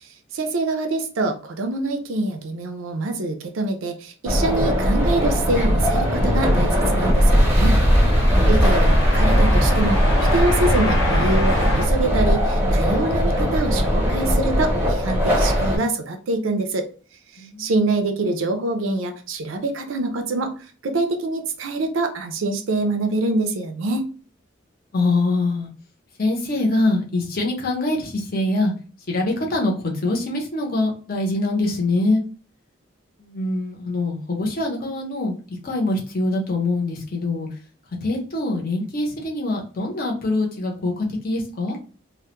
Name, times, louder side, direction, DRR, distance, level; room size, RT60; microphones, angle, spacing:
voice 1, 0.0-7.8 8.5-16.9 17.3-20.5 20.8-24.0, right 2 dB, 75° right, 5 dB, 0.4 m, -25 dB
sound 1, 4.3-15.8, equal, 10° right, 0.6 m, -19 dB
sound 2, 5.8-11.9, equal, 70° left, 0.9 m, -26 dB
voice 2, 17.4-17.7 24.9-25.7 26.2-28.7 29.1-32.2 33.2-35.4 35.6-37.5 38.0-41.8, left 2 dB, 45° left, 0 dB, 0.7 m, -24 dB
2.2 x 2.1 x 2.9 m, 0.37 s
head